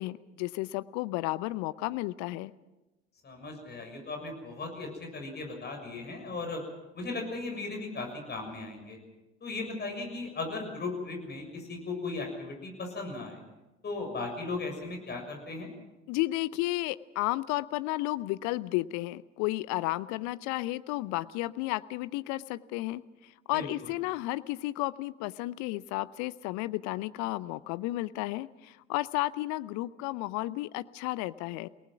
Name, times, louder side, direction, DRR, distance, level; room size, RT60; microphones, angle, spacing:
voice 1, 0.0-2.5 16.1-31.7, left 18 dB, 55° left, 17 dB, 0.7 m, -33 dB
voice 2, 3.2-6.6 6.9-9.0 9.4-13.4 13.8-15.7 23.5-23.9, left 3 dB, 30° left, 3 dB, 6.7 m, -37 dB
28.5 x 18.5 x 6.0 m, 1.0 s
figure-of-eight pair, 60°, 34 cm